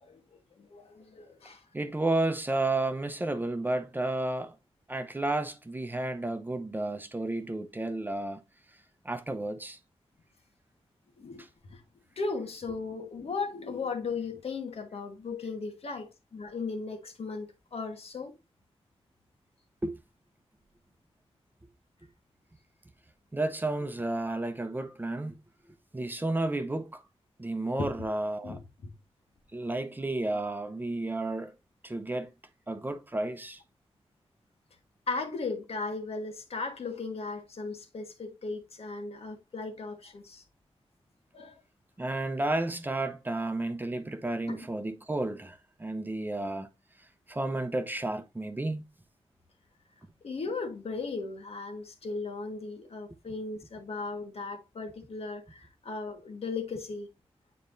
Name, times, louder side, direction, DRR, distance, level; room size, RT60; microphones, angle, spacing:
voice 1, 0.0-1.6 11.2-11.4 11.7-11.8 12.2-18.3 27.8-27.9 28.4-28.9 35.1-40.4 41.3-41.6 44.5-44.6 50.2-57.1, left 4 dB, 75° left, 1.4 m, -37 dB
voice 2, 1.7-4.6 4.9-8.4 9.0-9.8 11.4-11.5 19.8-20.0 23.3-25.4 25.9-27.0 27.4-28.6 29.5-31.5 31.8-32.3 32.7-33.6 42.0-46.7 47.3-48.8, right 2 dB, 20° right, 0.7 m, -32 dB
8.9 x 4.2 x 2.6 m
wide cardioid pair, 110°, 10 cm